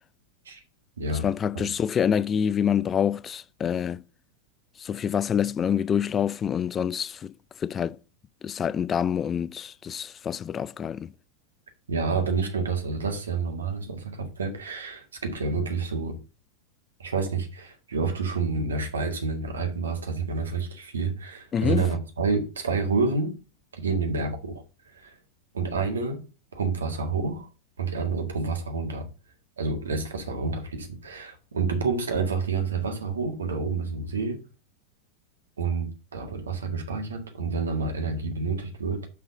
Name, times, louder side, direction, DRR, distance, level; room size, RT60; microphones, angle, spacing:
voice 1, 1.2-4.0 4.8-7.3 7.6-8.0 8.4-11.1 21.5-21.9, left 8 dB, 25° left, 0.4 m, -26 dB
voice 2, 11.9-16.2 17.0-23.3 23.7-25.2 25.5-26.2 26.5-27.5 27.8-29.1 29.6-34.4 35.6-39.1, right 4 dB, 70° right, 1.8 m, -29 dB
6.3 x 5.6 x 5.2 m
figure-of-eight pair, 90°, 0 cm